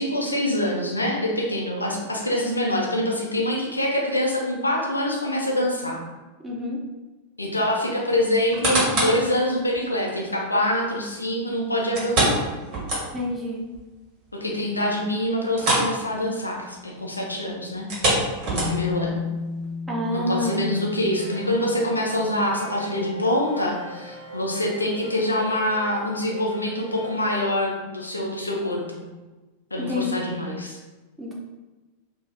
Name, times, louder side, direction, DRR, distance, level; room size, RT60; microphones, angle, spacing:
voice 1, 0.0-6.0 7.4-12.5 14.3-17.9 18.5-19.2 20.1-29.0 29.7-30.8, left 1 dB, 80° left, -1 dB, 0.5 m, -25 dB
voice 2, 6.4-6.8 13.1-13.6 19.9-20.6 29.8-30.1 31.2-31.3, left 2 dB, 10° right, -4 dB, 0.7 m, -27 dB
sound 1, 8.3-9.2 9.8-9.9 11.9-13.4 13.7-13.8 14.3-14.4 15.5-16.0 16.2-16.4 17.8-19.0 19.6-19.7, right 1 dB, 40° right, 1.3 m, -24 dB
Bass guitar, 18.6-22.5 23.6-23.7, left 5 dB, 20° left, 0.7 m, -33 dB
sound 2, 20.9-27.4, equal, 70° right, 0.5 m, -42 dB
2.5 x 2.4 x 3.3 m, 1.2 s
figure-of-eight pair, 90°, 0 cm